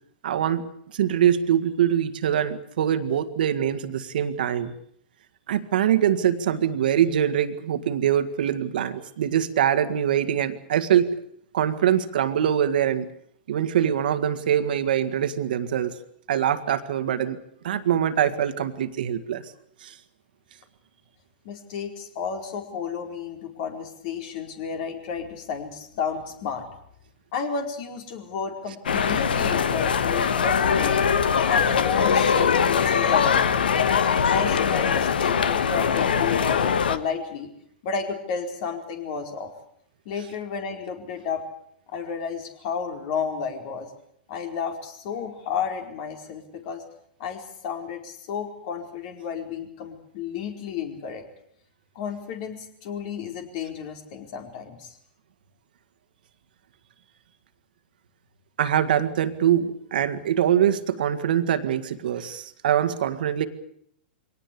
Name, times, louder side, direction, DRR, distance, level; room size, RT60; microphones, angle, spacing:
voice 1, 0.2-0.6 0.9-4.7 5.5-11.2 11.5-13.1 13.5-16.0 16.3-19.4 19.8-20.0 58.6-63.5, right 10 dB, 65° right, 9 dB, 1.9 m, -23 dB
voice 2, 21.4-26.7 27.3-31.1 31.5-33.6 34.1-37.5 37.8-39.5 40.0-41.4 41.9-43.9 44.3-46.8 47.2-51.2 51.9-55.0, left 6 dB, 50° left, 5 dB, 4.6 m, -32 dB
sound 1, 28.9-37.0, left 7 dB, 75° left, 1.4 m, -22 dB
23.5 x 18.5 x 8.6 m, 0.69 s
hypercardioid pair, 110°, 5 cm